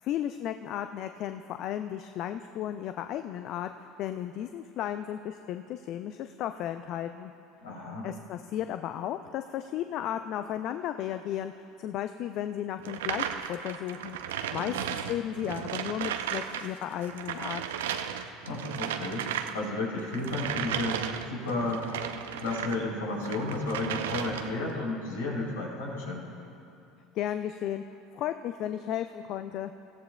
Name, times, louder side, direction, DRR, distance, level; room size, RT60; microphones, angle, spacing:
voice 1, 0.0-3.7 4.0-7.3 8.0-14.2 14.5-17.6 27.1-27.8 28.1-29.7, left 11 dB, 50° left, 9 dB, 0.4 m, -34 dB
voice 2, 7.6-8.1 14.5-14.8 18.4-21.9 22.4-26.2, left 2 dB, 70° left, -3 dB, 3.3 m, -33 dB
sound 1, 12.8-16.7 16.9-22.8 23.2-24.7, right 9 dB, 70° right, 0.6 m, -35 dB
25.5 x 15.0 x 2.2 m, 2.6 s
figure-of-eight pair, 65°, 0 cm